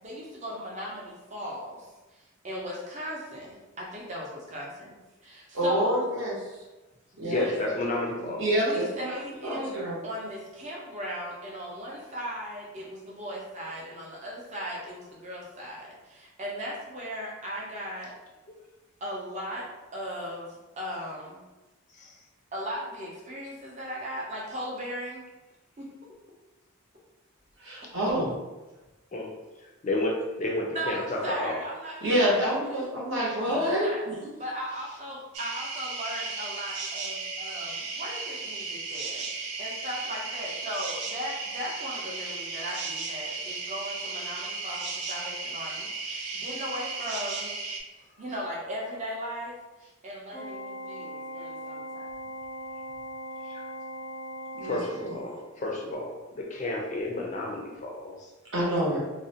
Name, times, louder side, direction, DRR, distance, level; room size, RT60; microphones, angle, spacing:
voice 1, 0.0-5.0 5.2-6.1 7.1-7.3 8.2-8.3 8.6-18.1 19.0-19.7 19.9-21.4 22.5-25.2 25.8-25.9 30.7-32.0 32.2-32.4 32.7-32.9 33.4-34.1 34.4-47.5 48.2-49.6 50.0-52.1, equal, 30° right, -4 dB, 0.5 m, -37 dB
voice 2, 5.5-6.3 7.2-7.4 8.4-10.0 27.6-28.3 32.0-34.3 54.5-54.8 58.5-59.0, equal, 60° right, -6 dB, 0.8 m, -27 dB
voice 3, 7.3-8.5 21.9-22.2 29.1-29.3 29.6-31.6 33.3-33.4 53.4-53.6 54.6-58.3, left 2 dB, 35° left, -1 dB, 0.3 m, -31 dB
sound 1, 35.3-47.8, right 4 dB, 85° right, 0.4 m, -35 dB
Organ, 50.3-55.4, equal, 5° right, 0.8 m, -39 dB
2.5 x 2.0 x 2.7 m, 1.1 s
head